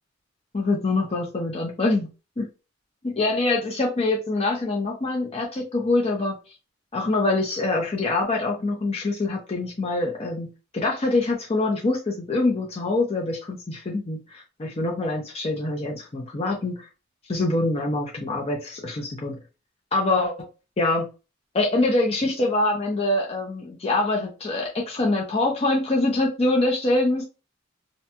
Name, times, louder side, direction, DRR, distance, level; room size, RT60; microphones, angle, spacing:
voice 1, 0.5-2.1 2.4-2.5 3.0-6.4 6.9-16.8 17.3-19.4 19.9-20.5 20.8-21.1 21.5-27.2, left 2 dB, 30° left, 0 dB, 0.6 m, -24 dB
2.8 x 2.6 x 2.2 m, 0.30 s
head